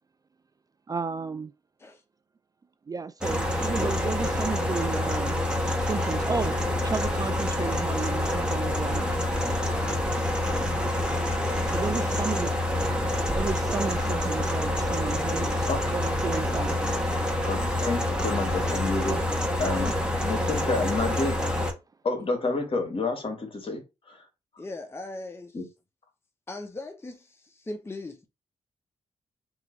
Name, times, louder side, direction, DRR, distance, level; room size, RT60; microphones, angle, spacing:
voice 1, 0.9-1.5 2.9-5.4 5.8-6.5 6.8-9.2 11.7-12.5 13.3-17.0, right 5 dB, 30° right, 0.3 m, -33 dB
sound 1, 3.2-21.7, left 1 dB, 5° right, 1.4 m, -27 dB
voice 2, 17.5-19.9 20.2-21.4 22.0-24.2 25.5-25.7, left 3 dB, 50° left, 1.8 m, -29 dB
voice 3, 24.6-25.6 26.5-28.3, left 2 dB, 20° left, 0.8 m, -39 dB
3.7 x 2.9 x 4.0 m
cardioid pair, 70°, 12 cm